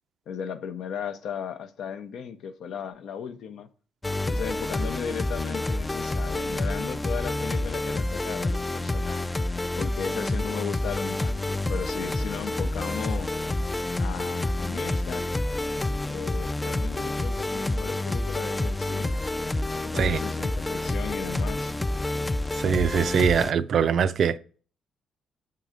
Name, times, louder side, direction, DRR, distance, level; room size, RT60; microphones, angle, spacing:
voice 1, 0.3-3.7 4.2-9.3 9.8-13.3 14.0-15.4 16.1-19.2 19.8-21.7, left 7 dB, 75° left, 0.6 m, -36 dB
sound 1, 4.0-23.5, left 2 dB, 15° left, 0.3 m, -28 dB
voice 2, 22.5-24.4, right 7 dB, 60° right, 0.4 m, -23 dB
7.6 x 3.8 x 5.0 m
cardioid pair, 90°, 0 cm